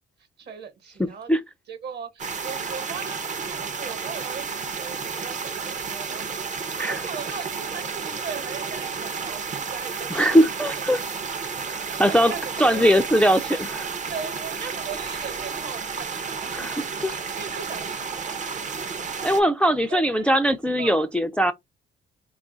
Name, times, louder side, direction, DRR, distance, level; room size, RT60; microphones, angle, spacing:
voice 1, 0.4-1.3 1.7-10.4 11.4-11.5 11.9-12.9 14.1-16.8 17.1-18.4 19.9-20.3 20.8-21.1, right 6 dB, 55° right, 1.1 m, -39 dB
sound 1, 2.2-19.4, right 5 dB, 40° right, 0.6 m, -32 dB
voice 2, 10.1-11.0 11.7-12.3 12.6-13.9 16.5-17.1 19.2-21.5, equal, 5° left, 0.3 m, -21 dB
2.9 x 2.4 x 3.8 m
cardioid pair, 90°, 20 cm